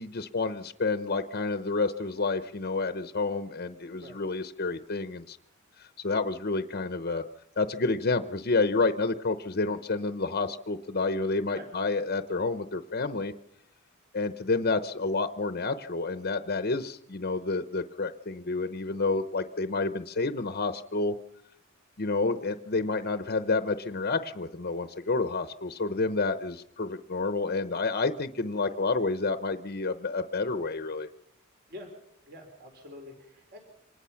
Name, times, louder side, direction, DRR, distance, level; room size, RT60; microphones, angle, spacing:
voice 1, 0.0-5.4 5.8-7.2 7.6-13.3 14.1-21.1 22.0-31.1, left 3 dB, 50° left, 10 dB, 0.8 m, -29 dB
voice 2, 32.3-33.6, left 1 dB, 50° right, 2 dB, 4.1 m, -46 dB
25.5 x 19.5 x 5.8 m, 0.78 s
head